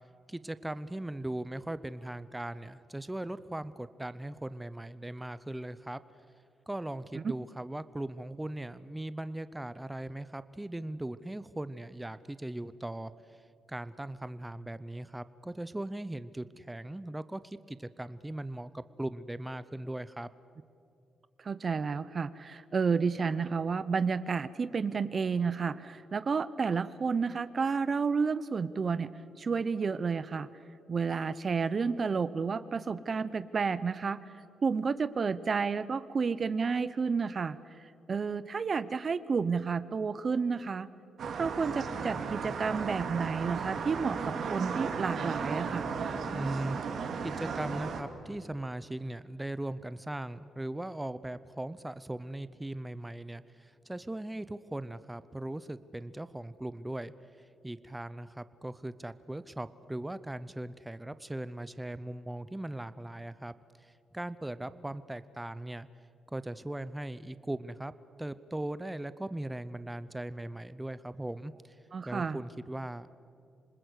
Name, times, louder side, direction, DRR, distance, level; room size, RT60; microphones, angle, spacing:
voice 1, 0.3-6.0 6.7-13.1 13.7-20.3 46.3-46.9 47.2-57.1 57.6-63.5 63.8-65.9 66.3-67.9 68.2-71.8 72.0-73.1, right 1 dB, 10° right, 14 dB, 0.8 m, -39 dB
voice 2, 21.4-29.1 29.4-30.5 30.9-34.2 34.6-40.9 41.4-45.9 71.9-72.4, right 5 dB, 45° right, 15 dB, 0.7 m, -31 dB
sound 1, 41.2-48.0, right 5 dB, 65° right, 2.4 m, -35 dB
27.0 x 20.0 x 8.3 m, 2.5 s
cardioid pair, 85°, 0 cm